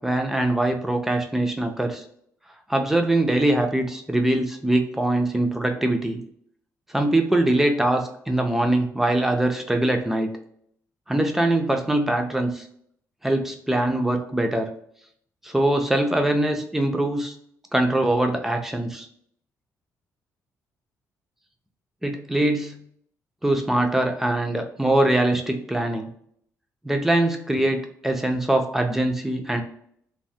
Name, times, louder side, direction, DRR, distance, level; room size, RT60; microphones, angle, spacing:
voice 1, 0.0-2.0 2.7-6.2 6.9-10.3 11.1-12.7 13.2-14.7 15.4-17.3 17.7-19.1 22.0-22.8 23.4-26.1 26.8-29.6, right 1 dB, 5° right, 4 dB, 0.4 m, -22 dB
3.2 x 2.1 x 2.6 m, 0.66 s
cardioid pair, 165°, 6 cm